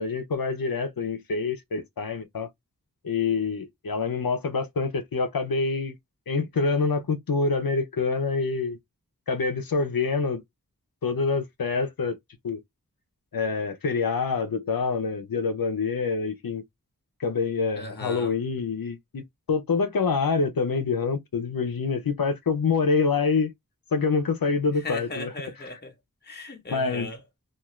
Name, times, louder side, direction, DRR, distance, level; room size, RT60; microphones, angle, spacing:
voice 1, 0.0-2.5 3.0-6.0 6.3-8.8 9.3-10.4 11.0-12.2 12.4-12.6 13.3-16.6 17.2-19.2 19.5-23.5 23.9-25.3 26.7-27.1, left 4 dB, 90° left, 0.6 m, -26 dB
voice 2, 17.8-18.3 24.8-25.9 26.2-27.2, left 2 dB, 30° left, 0.8 m, -37 dB
2.5 x 2.4 x 3.0 m
wide cardioid pair, 45°, 34 cm